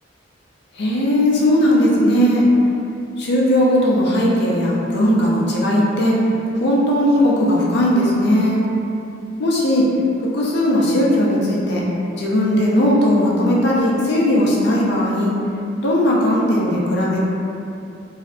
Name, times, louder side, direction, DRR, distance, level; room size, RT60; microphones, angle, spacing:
voice 1, 0.8-2.5 3.2-6.2 6.6-8.6 9.4-9.9 10.3-11.8 12.2-15.3 15.8-17.2, equal, 60° left, -5 dB, 0.5 m, -17 dB
2.5 x 2.0 x 2.5 m, 2.6 s
head